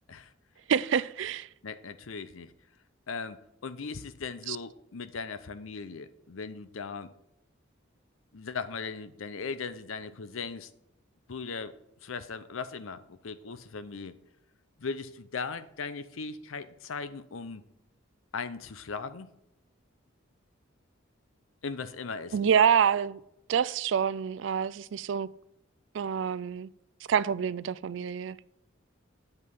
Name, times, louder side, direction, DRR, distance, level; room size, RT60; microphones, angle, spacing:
voice 1, 0.7-1.5 4.5-4.6 22.3-23.2 23.5-25.3 25.9-26.7 27.1-28.4, right 7 dB, 65° right, 0.3 m, -27 dB
voice 2, 1.6-2.5 3.1-7.1 8.3-10.7 11.3-11.7 12.0-14.2 14.8-17.6 18.3-19.3 21.6-22.5, left 5 dB, 80° left, 0.7 m, -38 dB
8.3 x 5.4 x 5.4 m
head